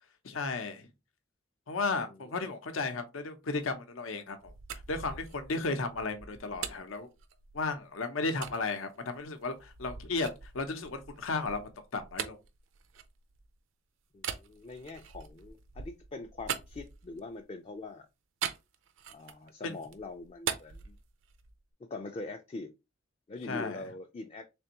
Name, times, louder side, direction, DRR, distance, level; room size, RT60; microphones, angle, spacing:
voice 1, 0.2-0.9 1.7-7.1 7.5-10.3 10.5-12.4 19.6-19.7 23.4-23.8, left 3 dB, 85° left, 0.7 m, -34 dB
voice 2, 2.1-2.6 14.1-18.1 19.1-21.0 21.8-22.7 23.3-24.4, left 3 dB, 30° left, 0.3 m, -43 dB
sound 1, 4.4-7.8 8.4-8.6 9.2-13.6 14.2-17.4 18.4-19.5 19.8-21.6, right 8 dB, 75° right, 0.5 m, -41 dB
3.4 x 3.4 x 2.9 m
head